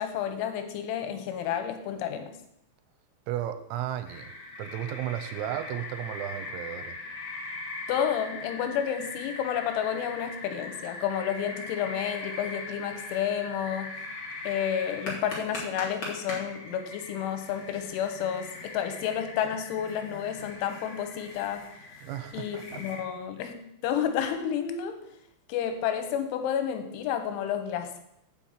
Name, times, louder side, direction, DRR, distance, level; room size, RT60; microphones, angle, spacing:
voice 1, 0.0-2.3 7.9-13.9 14.4-21.6 22.3-25.0 25.5-28.0, left 9 dB, 90° left, 7 dB, 3.3 m, -30 dB
voice 2, 3.3-4.3 4.6-7.0 22.0-22.8, right 11 dB, 90° right, 9 dB, 3.0 m, -34 dB
sound 1, 4.1-23.0, left 3 dB, 40° left, 1.8 m, -40 dB
6.3 x 5.8 x 7.2 m, 0.78 s
omnidirectional pair, 5.4 m